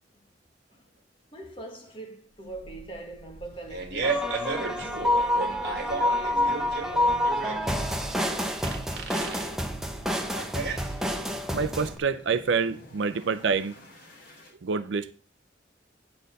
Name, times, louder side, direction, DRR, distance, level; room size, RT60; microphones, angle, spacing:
voice 1, 1.3-8.8, right 2 dB, 30° left, 1.7 m, -45 dB
sound 1, 2.3-14.5, equal, 50° left, 3.2 m, -50 dB
Fart, 3.4-11.4, right 3 dB, 60° right, 1.6 m, -34 dB
sound 2, 4.0-12.0, left 1 dB, ahead, 0.8 m, -28 dB
voice 2, 11.5-13.7 14.6-15.1, right 5 dB, 75° right, 0.5 m, -27 dB
9.5 x 4.4 x 6.5 m
head